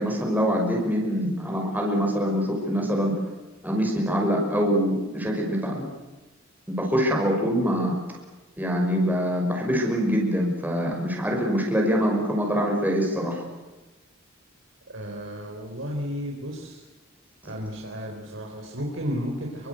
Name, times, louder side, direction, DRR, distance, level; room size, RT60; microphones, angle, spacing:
voice 1, 0.0-3.1 3.6-5.9 6.7-8.0 8.6-13.4, equal, 10° right, -1 dB, 5.9 m, -24 dB
voice 2, 14.9-16.8 17.4-19.7, equal, 70° right, 0 dB, 4.6 m, -33 dB
27.0 x 25.0 x 8.1 m, 1.1 s
head